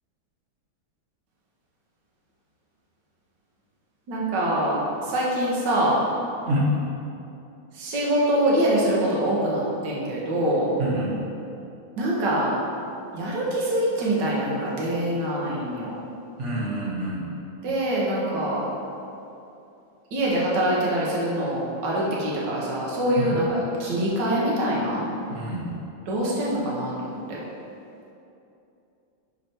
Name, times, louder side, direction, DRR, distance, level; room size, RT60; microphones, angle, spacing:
voice 1, 4.1-6.0 7.7-10.7 12.0-12.6 13.1-16.0 17.6-18.6 20.1-25.1 26.1-27.4, right 1 dB, 60° right, -5 dB, 1.7 m, -24 dB
voice 2, 10.8-11.1 16.4-17.2 23.2-23.4 25.3-25.6, right 1 dB, 40° right, -5 dB, 1.4 m, -27 dB
6.7 x 4.9 x 4.4 m, 2.7 s
omnidirectional pair, 2.2 m